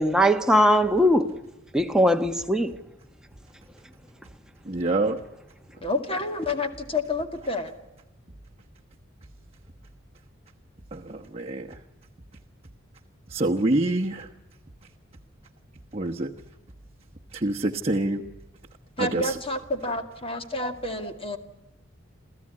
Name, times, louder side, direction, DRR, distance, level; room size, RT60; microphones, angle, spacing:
voice 1, 0.0-1.3 1.7-2.7, equal, 5° right, 1.2 m, -20 dB
voice 2, 4.6-5.2 10.9-11.8 13.3-14.3 15.9-16.3 17.3-18.2 19.0-19.4, right 2 dB, 30° right, 1.1 m, -26 dB
voice 3, 5.8-7.7 19.0-21.4, left 2 dB, 30° left, 2.2 m, -29 dB
29.0 x 15.5 x 9.8 m
head